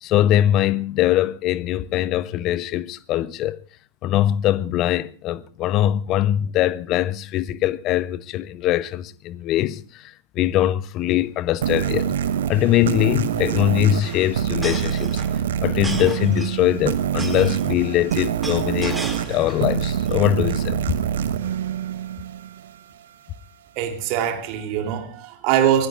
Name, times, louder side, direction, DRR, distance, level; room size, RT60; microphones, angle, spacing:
voice 1, 0.0-3.6 4.0-12.1 12.5-15.2 15.6-19.0 19.3-20.8, left 13 dB, 35° left, 0.7 m, -22 dB
sound 1, 11.0-11.2 11.5-11.6 11.8-12.1 13.1-19.7 20.0-20.5, right 2 dB, 5° right, 2.5 m, -36 dB
sound 2, 11.6-22.8, right 9 dB, 60° right, 1.1 m, -25 dB
voice 2, 23.7-25.9, right 10 dB, 45° right, 3.1 m, -22 dB
25.0 x 18.5 x 2.5 m
figure-of-eight pair, 90°, 0 cm